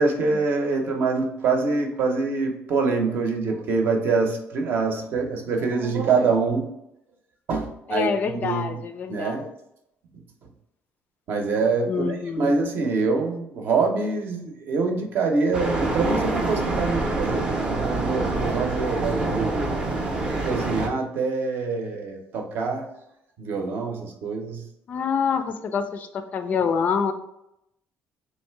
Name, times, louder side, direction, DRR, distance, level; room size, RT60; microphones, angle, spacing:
voice 1, 0.0-6.7 7.5-8.8 9.1-9.5 11.3-19.8 20.4-22.9 23.4-24.6, right 4 dB, 50° right, 3 dB, 0.7 m, -25 dB
voice 2, 7.9-9.4 11.9-12.4 24.9-27.1, left 6 dB, 40° left, 8 dB, 0.3 m, -26 dB
sound 1, 15.5-20.9, right 2 dB, 20° right, 0.6 m, -26 dB
3.3 x 2.7 x 4.4 m, 0.82 s
cardioid pair, 155°, 4 cm